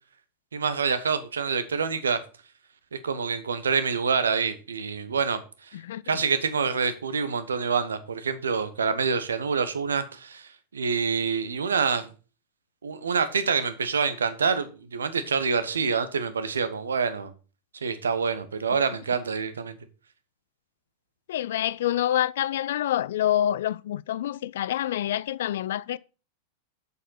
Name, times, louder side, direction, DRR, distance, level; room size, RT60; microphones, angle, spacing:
voice 1, 0.5-2.2 3.0-5.4 6.1-12.1 12.8-17.3 17.8-19.8, right 5 dB, 70° right, 1.1 m, -26 dB
voice 2, 21.3-26.0, left 12 dB, 60° left, 0.4 m, -27 dB
7.4 x 6.8 x 5.6 m
figure-of-eight pair, 90°, 0 cm